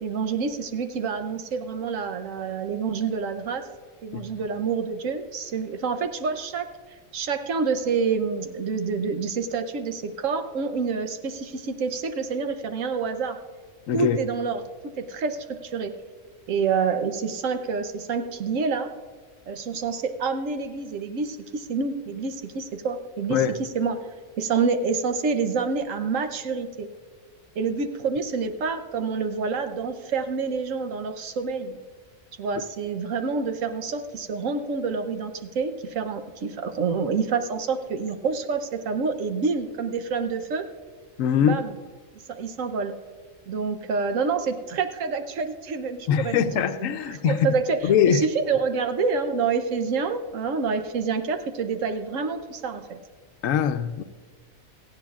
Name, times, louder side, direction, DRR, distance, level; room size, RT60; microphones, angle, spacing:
voice 1, 0.0-3.7 4.0-6.7 7.1-13.4 13.9-15.9 16.5-18.9 19.5-24.1 24.4-26.9 27.6-31.8 32.4-40.7 41.4-41.8 42.1-42.9 43.5-46.6 47.1-53.0, right 5 dB, 75° right, 1.1 m, -27 dB
voice 2, 13.9-14.2 23.3-23.5 41.2-41.6 46.1-47.4 47.8-48.2 53.4-54.0, left 8 dB, 80° left, 1.0 m, -22 dB
17.5 x 15.5 x 2.4 m
omnidirectional pair, 1.4 m